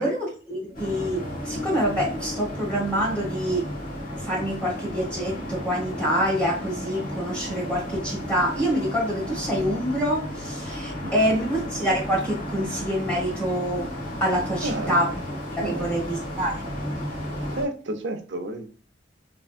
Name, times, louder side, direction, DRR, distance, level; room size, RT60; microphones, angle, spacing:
voice 1, 0.0-3.6 4.2-13.9 14.2-15.1 15.5-16.7, equal, 5° left, -5 dB, 1.6 m, -26 dB
sound 1, 0.7-17.6, equal, 45° left, 1.5 m, -33 dB
voice 2, 11.0-11.5 14.6-15.2 15.6-16.1 17.5-18.7, right 2 dB, 70° right, 7 dB, 0.6 m, -32 dB
3.8 x 3.4 x 2.3 m, 0.39 s
head